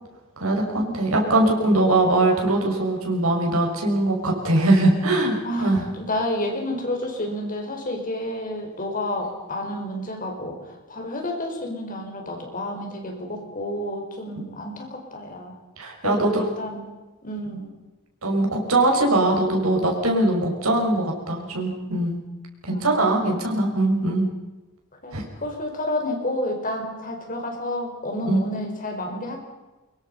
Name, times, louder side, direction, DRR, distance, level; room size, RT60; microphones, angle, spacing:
voice 1, 0.4-5.9 15.8-16.5 18.2-22.2 22.6-24.3 25.1-25.2 28.2-28.4, right 2 dB, 75° right, 1 dB, 6.2 m, -21 dB
voice 2, 5.4-15.6 16.0-16.8 17.2-17.7 22.7-23.6 25.0-29.4, left 1 dB, 40° left, 2 dB, 5.3 m, -30 dB
24.5 x 23.0 x 5.7 m, 1.2 s
head